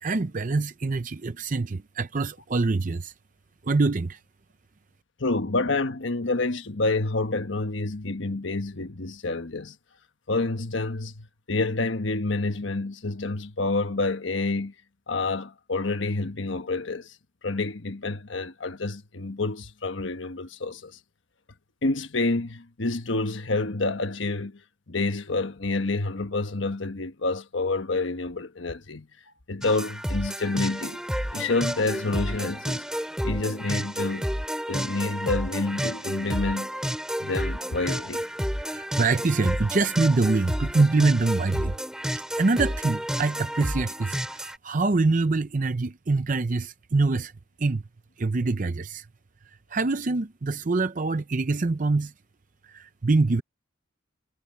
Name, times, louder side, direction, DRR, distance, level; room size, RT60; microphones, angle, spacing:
voice 1, 0.0-3.1 3.6-4.2 38.6-41.8 42.4-47.3 47.6-47.8 48.2-49.0 49.7-52.1 52.7-53.4, right 3 dB, 40° right, 0.6 m, -24 dB
voice 2, 5.2-9.8 10.3-14.7 15.1-17.2 17.4-21.0 21.8-24.6 24.9-29.1 29.5-31.0 31.3-32.8 33.2-34.3 34.7-36.7 37.2-38.3, left 3 dB, 70° left, 1.3 m, -28 dB
sound 1, 29.6-44.6, equal, 5° right, 3.7 m, -31 dB
head